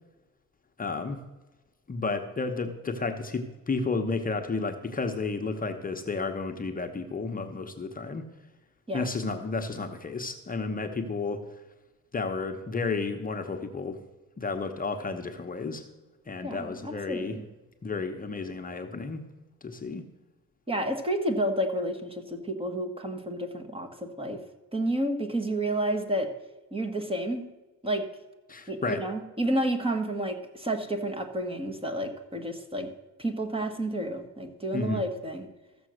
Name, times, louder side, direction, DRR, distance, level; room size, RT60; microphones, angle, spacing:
voice 1, 0.8-1.2 1.9-8.2 8.9-11.4 12.1-14.0 14.4-15.8 16.3-17.4 17.8-19.2 19.6-20.0 28.5-29.0 34.7-35.0, left 4 dB, 25° left, 4 dB, 0.9 m, -32 dB
voice 2, 16.4-17.5 20.7-24.4 24.7-26.3 26.7-27.4 27.8-28.1 28.7-32.9 33.2-35.5, right 1 dB, 15° right, 5 dB, 1.5 m, -30 dB
14.0 x 7.0 x 6.4 m, 1.2 s
cardioid pair, 110°, 32 cm